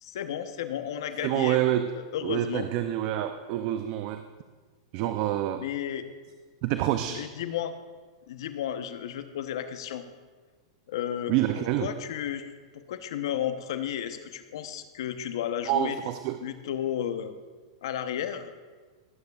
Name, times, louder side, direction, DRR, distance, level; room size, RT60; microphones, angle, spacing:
voice 1, 0.0-1.6 1.9-2.7 5.6-6.1 7.1-7.7 8.3-10.0 10.9-11.3 11.8-12.5 12.7-16.0 16.4-17.3 17.8-18.5, left 10 dB, 70° left, 9 dB, 0.9 m, -33 dB
voice 2, 1.2-1.9 2.2-4.2 4.9-5.6 6.6-7.2 11.3-11.9 15.7-16.4, right 12 dB, 50° right, 9 dB, 0.5 m, -27 dB
18.5 x 9.3 x 2.4 m, 1.4 s
hypercardioid pair, 120°, 3 cm